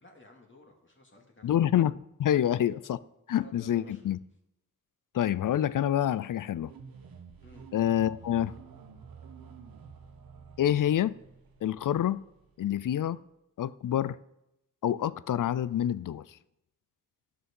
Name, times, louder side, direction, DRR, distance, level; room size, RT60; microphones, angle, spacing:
voice 1, 0.0-1.6 2.3-2.5 3.4-4.0 7.4-7.7, left 2 dB, 35° left, 2.4 m, -54 dB
voice 2, 1.4-3.0 3.3-4.2 5.1-6.7 7.7-8.5 10.6-11.2 11.6-12.2 12.6-13.2 13.6-14.2 14.8-16.3, left 11 dB, 65° left, 0.5 m, -27 dB
sound 1, 6.6-13.3, right 6 dB, 90° right, 1.0 m, -51 dB
11.5 x 6.0 x 5.4 m
cardioid pair, 40°, 34 cm